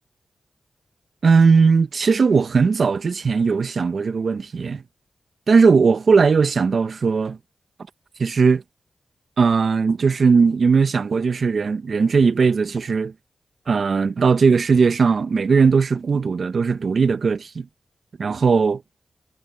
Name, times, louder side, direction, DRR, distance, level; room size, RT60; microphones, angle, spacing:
voice 1, 1.2-4.8 5.5-7.4 8.2-8.6 9.4-13.1 13.7-17.7 18.2-18.8, right 5 dB, 70° right, 1.2 m, -18 dB
cardioid pair, 45°, 0 cm